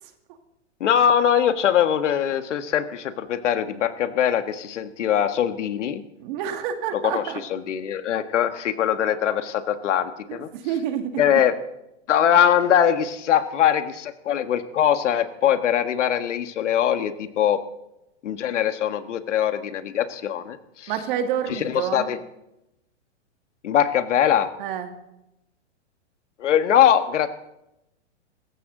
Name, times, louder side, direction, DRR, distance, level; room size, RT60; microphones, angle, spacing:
voice 1, 0.8-6.0 6.9-7.2 7.5-10.5 11.2-11.5 12.1-17.6 18.2-20.9 21.5-22.2 23.6-24.5 26.4-27.3, left 9 dB, 80° left, 9 dB, 1.6 m, -22 dB
voice 2, 6.2-7.4 10.3-11.2 20.9-22.1 24.6-24.9, right 9 dB, 45° right, 6 dB, 2.1 m, -28 dB
23.5 x 14.5 x 3.9 m, 0.88 s
hypercardioid pair, 150°, 36 cm